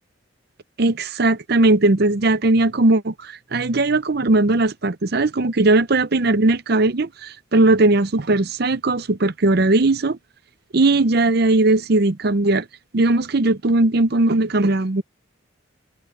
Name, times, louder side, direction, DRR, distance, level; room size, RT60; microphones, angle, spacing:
voice 1, 0.8-10.2 10.7-12.7 12.9-15.0, right 2 dB, 55° right, 0.7 m, -18 dB
head